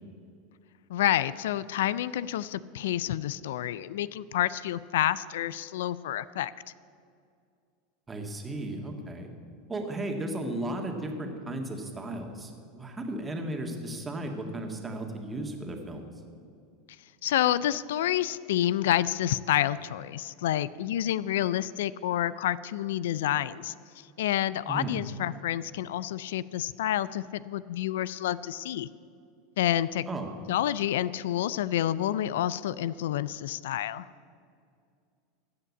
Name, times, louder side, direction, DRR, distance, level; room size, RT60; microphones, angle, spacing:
voice 1, 0.9-6.5 17.2-28.9 29.6-30.1 30.5-34.1, left 12 dB, 80° left, 18 dB, 0.3 m, -29 dB
voice 2, 8.1-9.3 9.7-16.0 24.7-24.9 30.1-30.3, right 1 dB, 20° right, 3 dB, 1.8 m, -35 dB
15.5 x 5.8 x 8.3 m, 2.3 s
hypercardioid pair, 100°, 0 cm